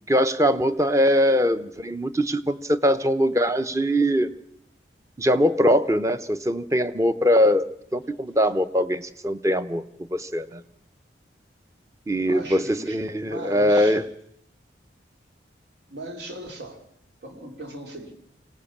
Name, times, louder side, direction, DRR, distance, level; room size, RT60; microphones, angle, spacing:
voice 1, 0.1-4.3 5.2-9.8 10.1-10.6 12.1-14.1, equal, 15° right, 0.8 m, -22 dB
voice 2, 12.2-14.0 15.9-16.8 17.2-18.1, right 2 dB, 75° right, 3.3 m, -38 dB
25.0 x 17.5 x 7.3 m
head